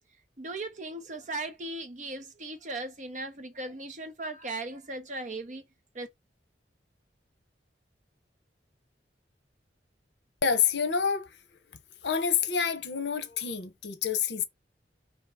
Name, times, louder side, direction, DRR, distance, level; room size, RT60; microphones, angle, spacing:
voice 1, 0.4-5.7 5.9-6.1, right 2 dB, 40° right, 0.9 m, -37 dB
voice 2, 10.4-11.3 12.0-14.4, left 6 dB, 70° left, 0.8 m, -27 dB
3.7 x 2.8 x 4.8 m
head